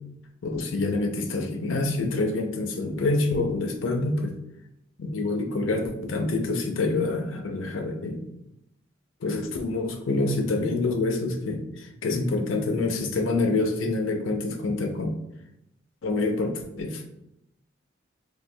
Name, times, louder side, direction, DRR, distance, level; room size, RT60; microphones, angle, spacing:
voice 1, 0.4-4.3 5.0-8.2 9.2-15.2 16.0-17.0, left 2 dB, 90° left, 4 dB, 0.5 m, -27 dB
4.4 x 2.6 x 2.2 m, 0.83 s
head